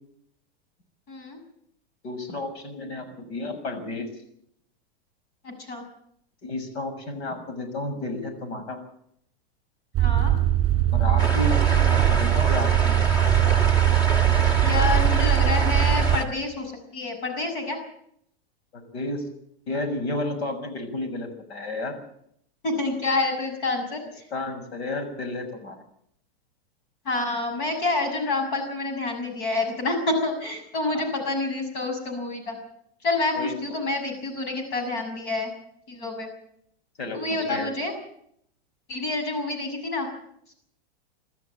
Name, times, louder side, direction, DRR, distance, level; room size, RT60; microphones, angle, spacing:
voice 1, 1.1-1.4 5.4-5.8 10.0-10.3 14.6-17.8 22.6-24.0 27.0-32.6 33.0-35.5 35.9-36.3 37.1-37.9 38.9-40.1, left 3 dB, 50° left, 5 dB, 6.6 m, -28 dB
voice 2, 2.0-4.1 6.4-8.8 10.9-13.0 18.7-19.2 19.7-22.0 24.3-25.8 30.9-31.1 33.3-33.5 37.0-37.7, left 2 dB, 80° left, 8 dB, 6.4 m, -32 dB
sound 1, 9.9-16.2, right 12 dB, 20° right, 3.0 m, -20 dB
sound 2, 11.2-16.2, right 1 dB, 10° left, 1.6 m, -29 dB
24.0 x 13.0 x 9.0 m, 0.72 s
supercardioid pair, 170°, 32 cm